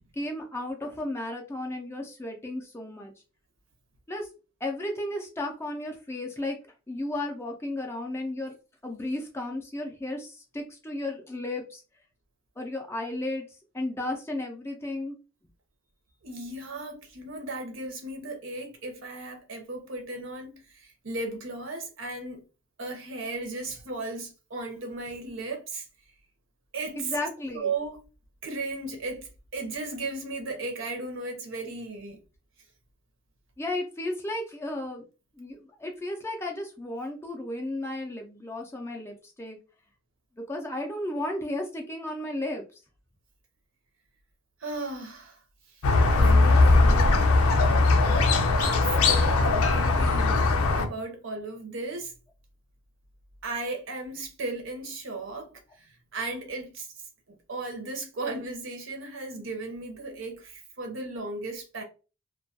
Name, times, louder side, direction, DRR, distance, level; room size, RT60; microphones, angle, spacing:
voice 1, 0.1-3.1 4.1-4.3 4.6-6.6 6.9-8.5 8.8-11.8 12.6-13.5 13.7-15.2 27.0-27.7 33.6-35.0 35.4-39.6 40.4-42.6, left 1 dB, 10° left, 0.3 m, -34 dB
voice 2, 16.2-22.4 22.8-25.9 26.7-27.1 27.5-28.0 28.4-32.2 44.6-45.4 46.1-47.4 48.6-50.5 50.8-52.1 53.4-56.9 57.5-61.8, right 2 dB, 60° right, 0.6 m, -36 dB
Squeak, 45.8-50.9, left 3 dB, 85° left, 0.5 m, -20 dB
2.2 x 2.2 x 2.6 m
head